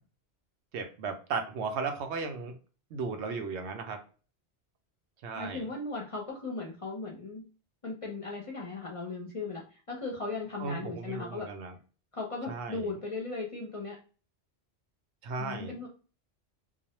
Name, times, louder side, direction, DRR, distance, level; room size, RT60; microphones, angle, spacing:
voice 1, 0.7-2.5 2.9-4.0 5.2-5.7 10.6-11.7 12.5-12.9 15.2-15.7, right 4 dB, 85° right, 5 dB, 0.9 m, -35 dB
voice 2, 5.3-7.4 7.8-11.5 12.1-14.0 15.4-15.9, left 3 dB, 40° left, -2 dB, 0.5 m, -37 dB
2.3 x 2.0 x 2.8 m, 0.36 s
omnidirectional pair, 1.1 m